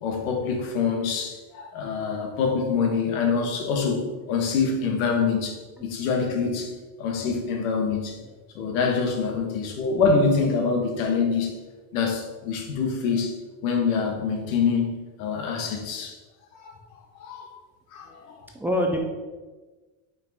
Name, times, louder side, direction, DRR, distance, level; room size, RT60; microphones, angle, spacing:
voice 1, 0.0-8.2 8.5-11.6 11.9-13.4 13.6-16.2 16.5-16.8 17.2-17.5 17.9-18.4, left 5 dB, 90° left, 3 dB, 1.3 m, -25 dB
voice 2, 18.5-19.0, equal, 5° right, 0 dB, 0.3 m, -25 dB
5.4 x 4.6 x 4.0 m, 1.3 s
cardioid pair, 145°, 40 cm